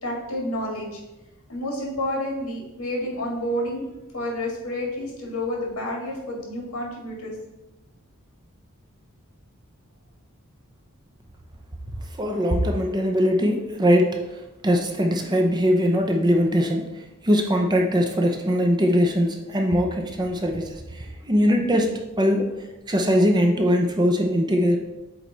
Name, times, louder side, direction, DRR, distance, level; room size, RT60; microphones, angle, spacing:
voice 1, 0.0-1.0 1.5-3.8 4.1-7.4, left 1 dB, 85° left, -1 dB, 1.9 m, -29 dB
voice 2, 12.2-14.2 14.6-16.8 17.2-22.5 22.9-24.8, equal, 20° right, 2 dB, 0.7 m, -21 dB
7.9 x 3.2 x 4.0 m, 0.98 s
head